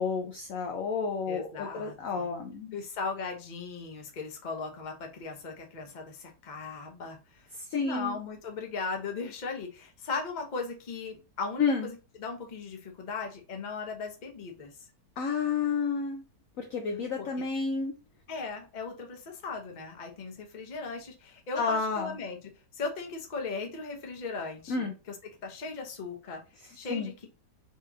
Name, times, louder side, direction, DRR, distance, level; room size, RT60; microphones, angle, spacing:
voice 1, 0.0-2.8 7.6-8.2 11.6-11.9 15.2-16.2 16.6-17.9 21.6-22.1 24.7-24.9 26.9-27.1, left 5 dB, 70° left, 3 dB, 0.8 m, -30 dB
voice 2, 1.3-2.3 2.7-7.5 7.8-11.9 12.2-14.8 17.2-17.3 18.3-22.4 22.7-25.1 25.4-26.4 26.8-27.3, left 4 dB, 40° left, 2 dB, 0.7 m, -37 dB
4.3 x 2.9 x 2.4 m, 0.30 s
omnidirectional pair, 1.9 m